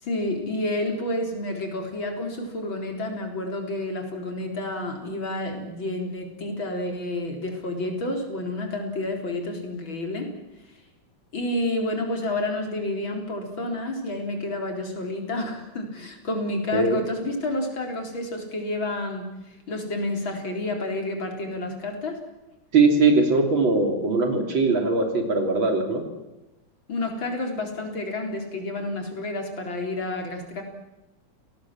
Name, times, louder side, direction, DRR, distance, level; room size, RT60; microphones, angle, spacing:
voice 1, 0.0-10.3 11.3-19.3 19.7-22.2 26.9-30.6, left 2 dB, 80° left, 4 dB, 5.0 m, -30 dB
voice 2, 22.7-26.0, right 3 dB, 80° right, 4 dB, 4.3 m, -20 dB
28.5 x 19.0 x 7.6 m, 0.99 s
omnidirectional pair, 2.1 m